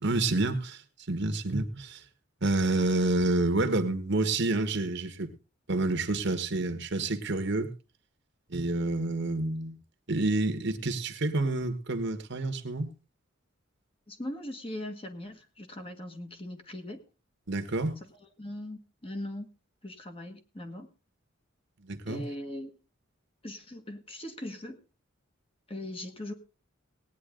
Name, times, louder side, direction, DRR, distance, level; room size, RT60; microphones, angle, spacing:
voice 1, 0.0-0.8 1.1-2.0 2.4-5.3 5.7-7.7 8.5-9.8 10.1-12.9 17.5-18.0 21.8-22.2, right 2 dB, 55° right, 9 dB, 1.4 m, -28 dB
voice 2, 14.1-17.0 18.1-19.5 19.8-20.9 22.1-22.7 23.4-24.8 25.7-26.3, left 1 dB, 25° left, 5 dB, 1.7 m, -40 dB
18.5 x 9.5 x 3.8 m, 0.31 s
head